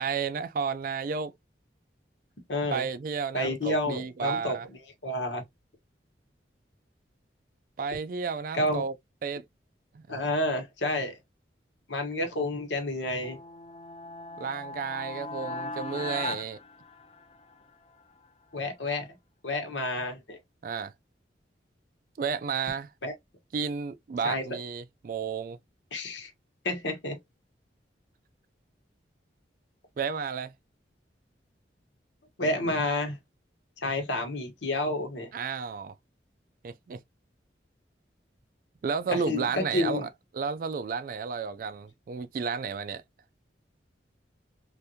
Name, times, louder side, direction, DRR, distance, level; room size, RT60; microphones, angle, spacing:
voice 1, 0.0-1.3 2.7-4.7 7.8-8.9 9.2-9.4 10.1-10.2 14.4-16.6 20.6-20.9 22.2-22.9 23.5-25.6 30.0-30.5 35.3-35.9 36.6-37.0 38.8-40.1 40.3-43.0, right 5 dB, 50° right, 0.3 m, -32 dB
voice 2, 2.5-2.8 3.3-4.6 5.0-5.4 8.5-8.8 10.1-11.2 11.9-13.4 18.5-19.1 19.4-20.4 23.0-23.1 24.2-24.5 25.9-26.3 26.6-27.2 32.4-33.2 33.8-35.3 39.1-40.1, left 1 dB, 90° left, 1.2 m, -30 dB
sound 1, 13.2-17.5, left 3 dB, 35° left, 0.4 m, -38 dB
3.4 x 2.5 x 2.7 m
head